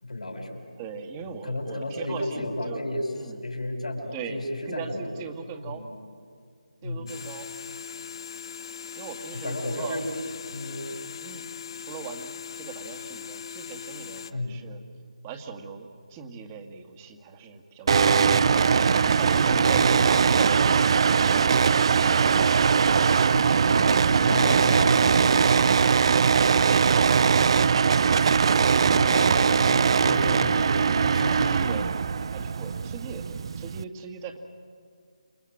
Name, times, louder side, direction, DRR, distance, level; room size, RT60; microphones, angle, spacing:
voice 1, 0.0-0.6 1.2-3.1 3.4-5.1 5.6-5.9 6.8-7.2 9.3-10.0 10.5-11.0 14.3-14.6 18.0-18.6 19.5-20.0 23.3-26.1 28.7-31.5, left 1 dB, 75° left, 4 dB, 5.4 m, -33 dB
voice 2, 0.8-2.8 3.1-3.4 4.1-5.9 6.8-7.5 8.9-10.1 11.2-11.5 11.8-12.3 12.6-14.8 15.2-18.2 19.0-21.7 30.2-30.4 31.3-31.9 32.3-34.4, right 6 dB, 20° right, 5 dB, 1.9 m, -40 dB
sound 1, 7.1-14.3, left 8 dB, 40° left, 0.9 m, -40 dB
sound 2, 17.9-33.8, right 6 dB, 45° right, 0.6 m, -21 dB
28.5 x 24.0 x 7.9 m, 2.2 s
figure-of-eight pair, 155°, 4 cm